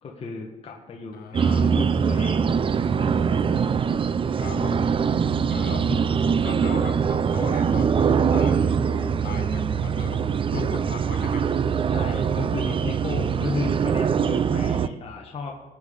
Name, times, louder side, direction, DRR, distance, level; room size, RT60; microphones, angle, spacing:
voice 1, 0.0-2.5 2.9-3.4 11.9-15.5, left 4 dB, 35° left, -1 dB, 1.7 m, -35 dB
voice 2, 1.1-1.7 4.4-4.8 5.5-6.9 7.3-11.5, left 5 dB, 65° left, 3 dB, 4.0 m, -38 dB
sound 1, 1.3-14.9, right 6 dB, 30° right, 0.6 m, -23 dB
20.0 x 8.7 x 5.5 m, 1.2 s
cardioid pair, 110°, 17 cm